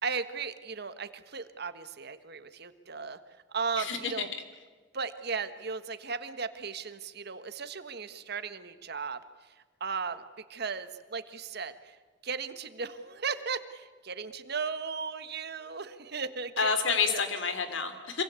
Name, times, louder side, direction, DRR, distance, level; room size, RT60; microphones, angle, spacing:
voice 1, 0.0-3.2 3.5-4.3 4.9-9.2 9.8-12.0 12.2-16.7 17.1-17.2, right 5 dB, 60° right, 11 dB, 1.5 m, -36 dB
voice 2, 3.8-4.3 16.6-18.2, left 5 dB, 80° left, 9 dB, 3.1 m, -29 dB
26.0 x 23.5 x 8.4 m, 1.4 s
head